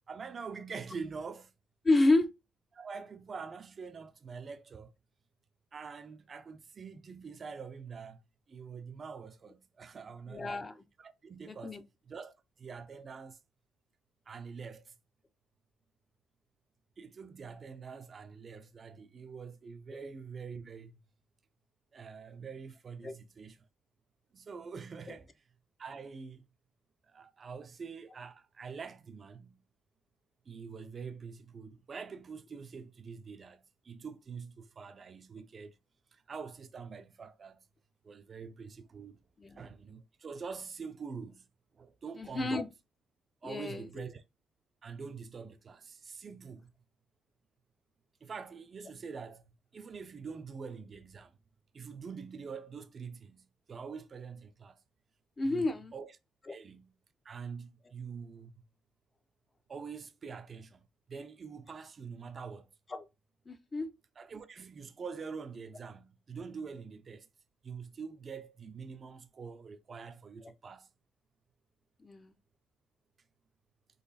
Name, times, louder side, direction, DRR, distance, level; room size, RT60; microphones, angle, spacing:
voice 1, 0.1-1.5 2.7-4.9 5.7-8.2 8.5-10.6 11.0-11.8 12.1-13.4 14.3-14.8 17.0-20.9 21.9-23.6 24.3-25.3 25.8-26.4 27.1-29.6 30.5-35.7 36.3-37.6 38.0-39.2 39.6-41.4 41.8-42.7 43.4-44.2 44.8-46.7 48.2-49.4 49.7-51.3 51.7-54.8 55.4-56.1 56.5-56.9 57.3-58.5 59.7-60.8 61.1-62.7 64.2-67.3 67.6-70.9, right 5 dB, 35° right, 0.4 m, -45 dB
voice 2, 1.8-2.3 10.3-10.8 11.5-11.8 23.0-23.1 39.4-39.6 42.1-42.7 43.4-43.8 55.4-55.9 62.9-63.0 63.5-63.9 70.4-70.5 72.0-72.3, left 2 dB, 20° left, 0.5 m, -30 dB
3.9 x 3.1 x 4.0 m
cardioid pair, 150°, 0 cm